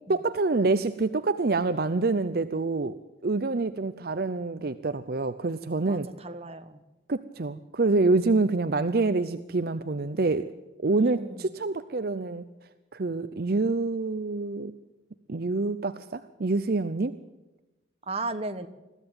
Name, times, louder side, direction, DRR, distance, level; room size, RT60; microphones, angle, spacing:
voice 1, 0.1-3.0 3.2-6.1 7.1-10.5 10.8-12.4 12.9-14.7 15.3-17.1, right 3 dB, 55° right, 11 dB, 0.6 m, -26 dB
voice 2, 5.9-6.8 11.0-11.5 18.1-18.7, right 2 dB, 35° right, 9 dB, 1.2 m, -35 dB
21.5 x 15.0 x 8.8 m, 1.1 s
head